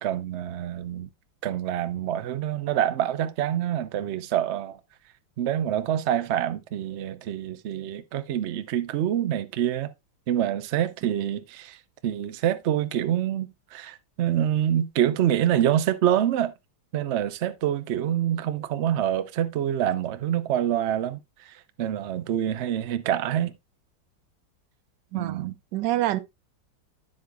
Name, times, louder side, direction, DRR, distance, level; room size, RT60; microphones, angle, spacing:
voice 1, 0.0-1.1 1.4-4.8 5.4-9.9 10.3-16.5 16.9-23.6 25.1-25.5, right 11 dB, 90° right, 0.6 m, -26 dB
voice 2, 25.1-26.2, right 14 dB, 75° right, 1.2 m, -27 dB
9.6 x 7.6 x 2.3 m
omnidirectional pair, 2.0 m